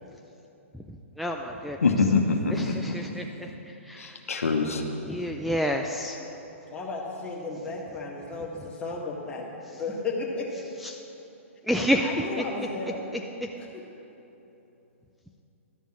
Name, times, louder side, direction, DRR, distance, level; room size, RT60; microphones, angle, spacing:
voice 1, 1.2-1.8 2.5-3.5 3.9-4.1 5.0-6.2 10.8-11.0 11.7-12.4 13.4-13.5, equal, ahead, 0 dB, 0.4 m, -29 dB
voice 2, 1.8-3.0 4.0-4.8, left 4 dB, 90° left, 3 dB, 1.1 m, -24 dB
voice 3, 6.7-9.5 9.7-10.5 12.0-13.0 13.6-13.8, left 3 dB, 15° left, -3 dB, 1.6 m, -34 dB
12.0 x 5.4 x 7.4 m, 3.0 s
hypercardioid pair, 135°, 7 cm